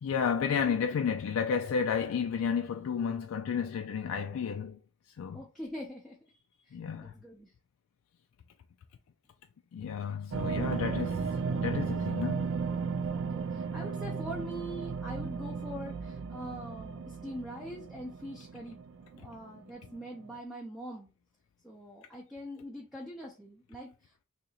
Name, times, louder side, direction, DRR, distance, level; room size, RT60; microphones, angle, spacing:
voice 1, 0.0-4.8 5.2-5.4 6.7-7.1 9.7-12.5, left 6 dB, 85° left, 0.3 m, -32 dB
voice 2, 5.3-7.5 13.1-18.8 19.1-21.1 21.6-24.2, equal, ahead, 0.5 m, -43 dB
sound 1, 10.3-19.6 19.9-20.0 20.2-20.4, right 5 dB, 65° right, 0.3 m, -35 dB
2.8 x 2.6 x 4.2 m
head